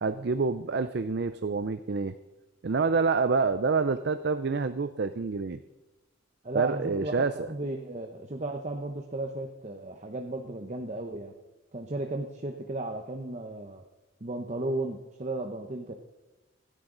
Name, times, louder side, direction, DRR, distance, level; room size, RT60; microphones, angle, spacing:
voice 1, 0.0-2.1 2.6-5.6 6.5-7.5, right 4 dB, 55° right, 11 dB, 0.5 m, -27 dB
voice 2, 6.4-11.3 11.7-13.8 14.2-15.9, right 2 dB, 35° right, 3 dB, 0.9 m, -35 dB
26.0 x 10.0 x 3.9 m, 1.1 s
head